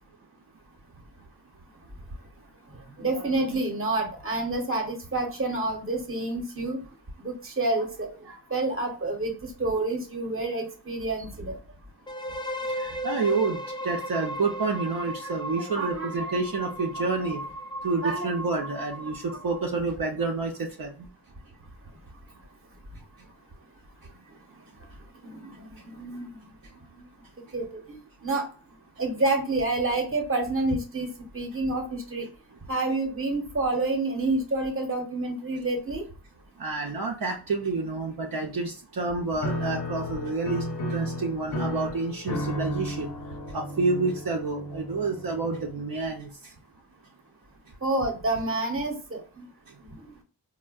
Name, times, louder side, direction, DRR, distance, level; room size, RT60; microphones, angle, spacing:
voice 1, 2.7-6.8 7.2-11.6 15.7-16.3 17.0-17.1 18.0-18.3 25.2-26.4 27.5-28.5 29.0-32.3 32.7-36.0 47.8-49.4 49.9-50.0, right 2 dB, 35° right, 4 dB, 0.9 m, -29 dB
sound 1, 12.1-19.9, equal, 15° left, 0.3 m, -36 dB
voice 2, 12.8-17.4 17.8-21.1 36.6-40.6 40.9-43.1 43.5-46.5, right 3 dB, 60° right, 0 dB, 0.6 m, -29 dB
Piano, 39.4-46.2, equal, 70° left, 0.9 m, -34 dB
4.2 x 2.2 x 2.3 m, 0.38 s
wide cardioid pair, 70°, 39 cm